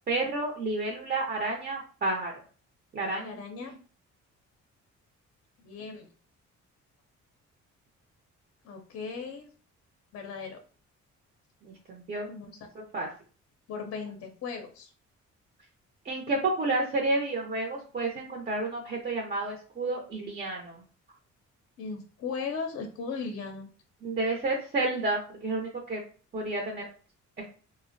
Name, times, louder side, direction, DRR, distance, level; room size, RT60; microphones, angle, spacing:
voice 1, 0.1-2.3 2.9-3.3 3.6-3.7 11.6-12.3 12.9-13.1 16.0-20.8 24.0-26.0 26.3-26.9 27.4-27.5, right 2 dB, 35° right, 1 dB, 0.5 m, -30 dB
voice 2, 3.2-3.7 5.6-6.1 8.6-9.5 10.1-10.6 12.3-12.5 13.7-14.9 21.8-23.7, left 5 dB, 50° left, 5 dB, 0.5 m, -37 dB
2.4 x 2.0 x 2.5 m, 0.39 s
cardioid pair, 90°, 30 cm